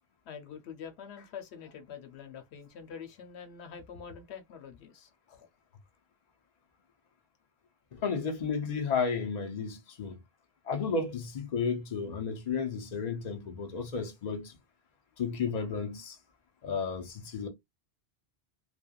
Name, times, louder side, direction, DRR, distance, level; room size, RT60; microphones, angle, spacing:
voice 1, 0.3-5.5, left 7 dB, 85° left, 0.9 m, -46 dB
voice 2, 7.9-10.2 10.6-14.5 15.2-16.2 16.6-17.5, left 5 dB, 45° left, 0.7 m, -33 dB
3.2 x 2.1 x 2.3 m
omnidirectional pair, 1.1 m